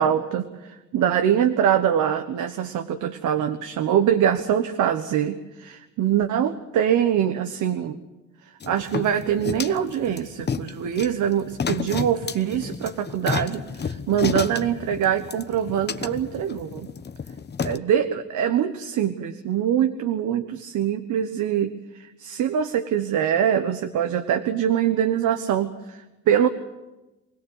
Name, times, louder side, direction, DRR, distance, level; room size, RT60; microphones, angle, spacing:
voice 1, 0.0-8.0 8.7-16.9 17.6-26.5, right 9 dB, 80° right, 7 dB, 1.3 m, -24 dB
sound 1, 8.6-17.8, left 6 dB, 35° left, 1.1 m, -31 dB
25.0 x 17.5 x 8.0 m, 1.1 s
cardioid pair, 90°, 30 cm